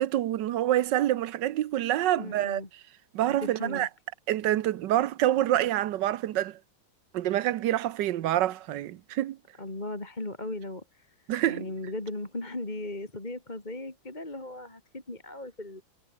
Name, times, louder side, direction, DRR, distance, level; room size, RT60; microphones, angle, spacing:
voice 1, 0.0-2.6 3.1-3.9 4.3-6.6 7.1-9.4 11.3-11.7, right 13 dB, 65° right, 1.3 m, -26 dB
voice 2, 2.2-2.7 3.3-3.9 9.6-11.1 11.5-15.8, left 2 dB, 20° left, 3.0 m, -37 dB
omnidirectional pair, 2.2 m